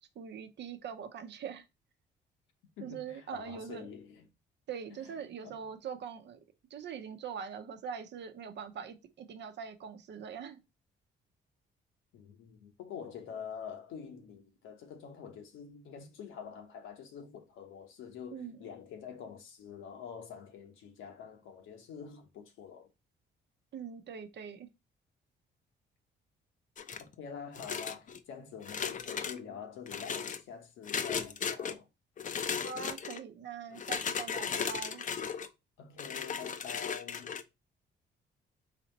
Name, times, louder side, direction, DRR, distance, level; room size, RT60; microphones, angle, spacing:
voice 1, 0.2-1.6 2.8-3.9 4.7-6.4 6.7-10.6 18.3-18.6 23.7-24.7 32.6-35.0, right 7 dB, 60° right, 0.7 m, -42 dB
voice 2, 2.8-4.2 5.0-5.2 5.4-5.6 12.1-22.9 27.2-31.9 35.8-37.4, left 7 dB, 90° left, 1.1 m, -46 dB
sound 1, 26.8-27.1 27.6-28.2 28.6-29.4 29.9-30.4 30.9-31.7 32.2-33.2 33.7-35.5 36.0-37.4, left 7 dB, 40° left, 0.5 m, -36 dB
4.1 x 2.9 x 4.0 m
cardioid pair, 90°, 20 cm